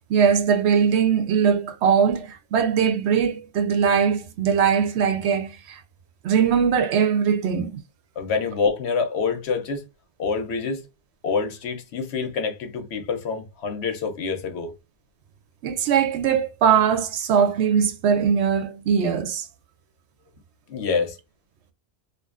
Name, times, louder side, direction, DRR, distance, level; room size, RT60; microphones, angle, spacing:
voice 1, 0.1-5.8 6.2-7.8 15.6-19.5, right 7 dB, 80° right, 0.9 m, -21 dB
voice 2, 8.2-9.8 10.2-10.8 11.2-14.7 20.7-21.2, left 5 dB, 80° left, 0.9 m, -26 dB
2.5 x 2.4 x 2.3 m
omnidirectional pair, 1.1 m